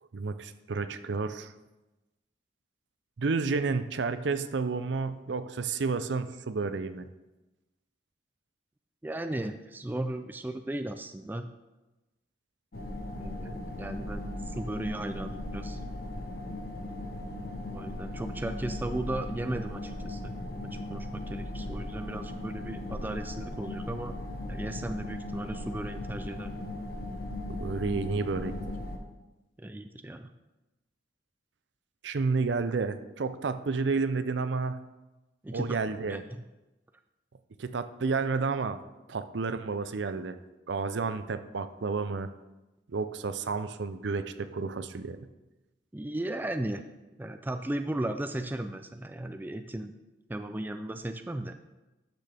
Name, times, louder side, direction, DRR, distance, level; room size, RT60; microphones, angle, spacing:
voice 1, 0.1-1.5 3.2-7.0 27.5-28.6 32.0-34.8 35.5-36.2 37.6-38.8 39.1-40.4 40.7-42.3 42.9-45.2, right 4 dB, 65° right, 11 dB, 0.5 m, -31 dB
voice 2, 9.0-11.5 13.2-15.8 17.7-20.3 20.7-24.1 24.5-26.6 29.6-30.3 35.4-35.8 36.1-36.4 45.9-46.8 47.2-49.9 50.3-51.5, right 1 dB, 10° right, 8 dB, 0.3 m, -36 dB
sound 1, 12.7-29.0, left 1 dB, 55° left, 0.9 m, -38 dB
12.0 x 6.1 x 3.4 m, 1.1 s
head